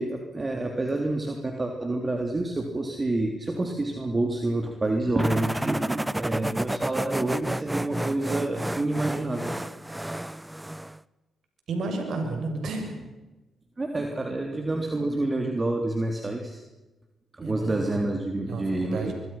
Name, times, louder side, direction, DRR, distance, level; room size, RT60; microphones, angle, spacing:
voice 1, 0.0-9.6 13.8-16.6 17.3-19.1, right 2 dB, 30° right, 3 dB, 3.5 m, -28 dB
sound 1, 5.2-11.0, right 1 dB, 10° right, 0.8 m, -31 dB
voice 2, 11.7-12.9 17.4-18.0 18.3-19.1, right 3 dB, 70° right, 4 dB, 7.0 m, -32 dB
24.5 x 24.0 x 5.9 m, 1.1 s
supercardioid pair, 55°, 0 cm